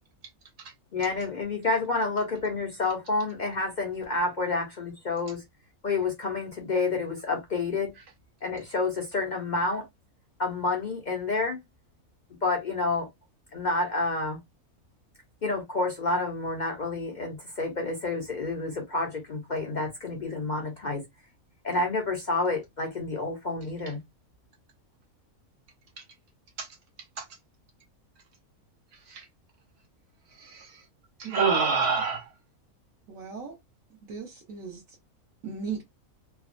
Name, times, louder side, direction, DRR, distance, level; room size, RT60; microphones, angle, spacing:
voice 1, 0.9-5.4 5.8-7.9 8.4-9.8 10.4-11.6 12.4-13.1 13.5-14.4 15.4-21.0 21.6-24.0, left 3 dB, 55° left, 0.5 m, -29 dB
voice 2, 30.4-30.8 31.2-32.3, right 5 dB, 90° right, 1.4 m, -27 dB
voice 3, 33.1-33.5 34.1-34.8 35.4-35.8, right 5 dB, 70° right, 1.3 m, -36 dB
3.3 x 2.0 x 2.4 m
omnidirectional pair, 1.5 m